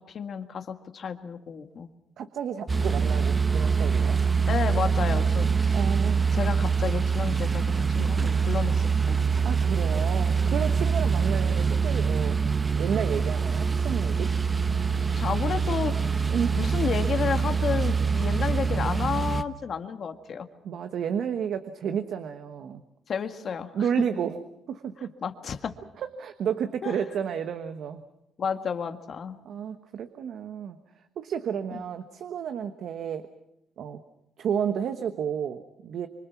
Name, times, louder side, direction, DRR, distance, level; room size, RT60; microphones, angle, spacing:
voice 1, 0.0-1.9 4.5-5.8 6.3-9.3 15.1-20.5 23.1-23.9 25.2-25.7 26.8-27.0 28.4-29.4 31.7-31.8, left 6 dB, 55° left, 7 dB, 1.8 m, -31 dB
voice 2, 2.2-4.2 5.7-6.3 8.0-8.1 9.4-12.4 12.8-14.3 16.3-16.6 20.6-22.8 23.7-24.4 24.7-25.1 26.0-28.0 29.4-30.8 31.2-33.3 33.8-34.0 34.4-36.1, right 8 dB, 70° right, 8 dB, 1.2 m, -31 dB
sound 1, 2.7-19.4, right 5 dB, 30° right, 1.0 m, -24 dB
26.0 x 24.0 x 6.0 m, 0.84 s
cardioid pair, 90°, 0 cm